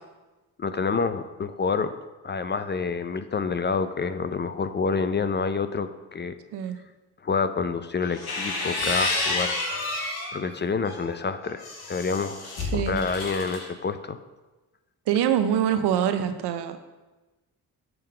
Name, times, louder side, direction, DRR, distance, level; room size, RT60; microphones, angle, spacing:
voice 1, 0.6-1.9 2.2-6.3 7.2-9.6 10.3-14.2, left 5 dB, 30° left, 11 dB, 0.4 m, -28 dB
sound 1, 8.0-10.4 10.8-13.6, left 3 dB, 70° left, 1.4 m, -30 dB
voice 2, 15.1-16.9, right 9 dB, 80° right, 9 dB, 0.6 m, -24 dB
6.8 x 3.7 x 5.4 m, 1.2 s
supercardioid pair, 50°, 40 cm